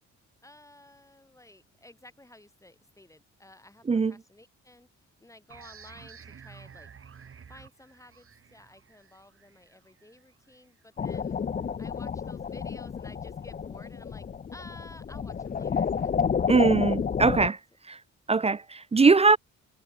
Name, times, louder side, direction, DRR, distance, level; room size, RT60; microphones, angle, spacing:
voice 1, 0.4-4.9 5.2-7.0 7.5-11.4 11.8-14.3 14.5-16.1, left 1 dB, 10° left, 7.6 m, -53 dB
sound 1, 5.5-10.8, right 6 dB, 45° right, 6.1 m, -51 dB
sound 2, 11.0-17.5, left 6 dB, 30° left, 0.6 m, -30 dB
voice 2, 16.5-17.6 17.9-18.0 18.3-19.4, right 4 dB, 20° right, 0.5 m, -21 dB
cardioid pair, 90°, 30 cm